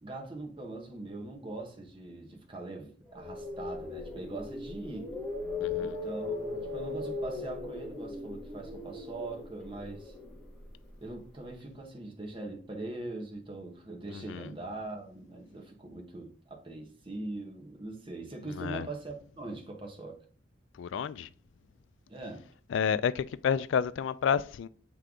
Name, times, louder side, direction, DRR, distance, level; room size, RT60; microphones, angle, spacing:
voice 1, 0.0-5.1 5.8-10.1 11.0-20.2 22.1-22.5, right 2 dB, 25° right, 1.2 m, -42 dB
sound 1, 3.1-11.2, left 3 dB, 5° left, 1.2 m, -38 dB
voice 2, 5.6-6.0 14.1-14.5 18.5-18.9 20.8-21.3 22.7-24.7, left 7 dB, 75° left, 0.3 m, -30 dB
7.7 x 3.3 x 3.7 m
head